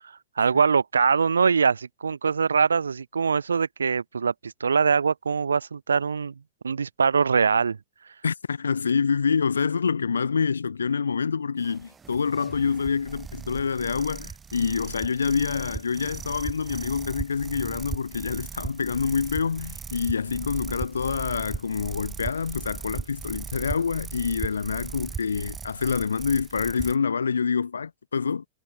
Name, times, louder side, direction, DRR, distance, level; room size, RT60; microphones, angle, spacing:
voice 1, 0.4-6.3 6.6-7.8, right 5 dB, 75° right, 3.5 m, -23 dB
voice 2, 8.2-28.5, left 5 dB, 75° left, 2.3 m, -26 dB
sound 1, 11.6-27.0, right 6 dB, 15° right, 4.8 m, -38 dB
figure-of-eight pair, 90°, 0 cm